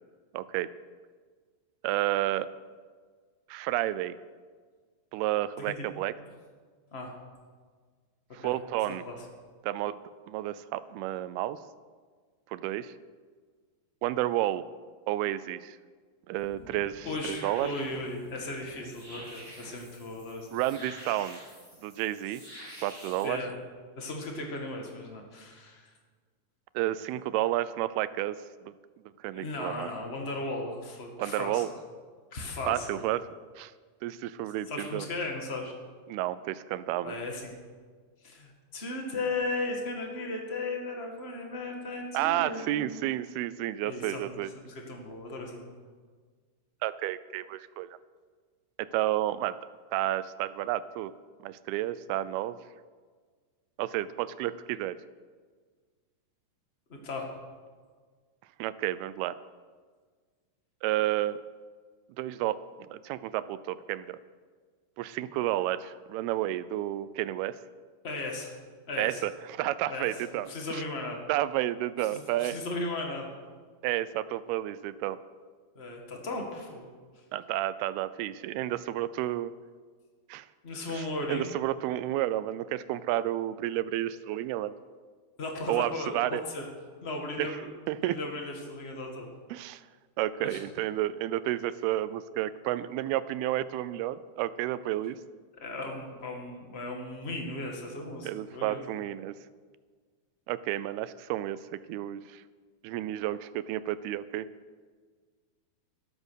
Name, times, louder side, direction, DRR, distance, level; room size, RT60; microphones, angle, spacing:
voice 1, 0.3-0.7 1.8-2.5 3.5-4.2 5.1-6.1 8.3-9.1 9.6-10.0 10.3-11.6 12.5-12.9 14.0-14.6 15.1-15.8 16.3-17.7 20.5-21.4 21.8-22.4 22.8-23.4 26.8-28.4 28.7-28.8 29.2-29.9 31.2-31.7 32.7-33.2 33.6-33.7 34.0-35.1 36.1-37.2 42.1-44.5 46.8-47.9 48.8-49.5 49.9-51.1 51.4-52.6 53.8-55.0 58.6-59.4 60.8-61.4 62.2-62.6 62.9-64.2 65.0-67.6 69.0-70.8 71.3-72.6 73.8-75.2 77.3-79.5 80.3-80.5 80.9-84.7 85.7-86.4 87.4-87.6 87.9-88.2 89.5-89.8 90.2-95.2 98.3-99.3 100.5-101.6 101.9-102.4 102.8-104.5, right 14 dB, 80° right, 15 dB, 2.3 m, -31 dB
voice 2, 8.9-9.2 17.0-20.6 23.2-23.6 23.9-25.9 29.3-31.7 32.3-33.0 34.7-35.7 37.0-37.5 38.2-43.0 43.8-45.7 56.9-57.3 68.0-68.5 68.9-69.2 69.9-71.2 72.1-73.3 75.7-76.9 80.6-81.5 85.4-86.7 87.0-87.7 88.0-89.3 90.4-90.6 95.6-98.8, left 2 dB, 45° left, 1 dB, 0.7 m, -36 dB
sound 1, 16.4-23.2, equal, 5° left, 2.8 m, -48 dB
13.0 x 12.5 x 6.3 m, 1.6 s
omnidirectional pair, 4.8 m